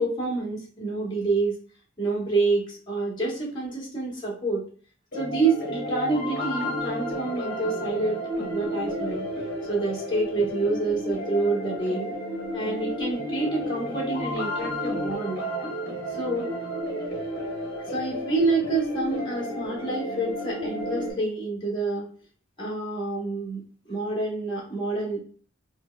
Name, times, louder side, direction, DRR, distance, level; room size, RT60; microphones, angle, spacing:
voice 1, 0.0-1.6 2.0-4.6 5.1-9.3 9.7-12.1 12.5-15.5 16.1-16.5 17.9-22.1 22.6-25.2, right 3 dB, 25° left, -4 dB, 1.2 m, -28 dB
sound 1, 5.1-21.1, equal, 50° left, 1.0 m, -32 dB
4.3 x 2.2 x 2.4 m, 0.42 s
head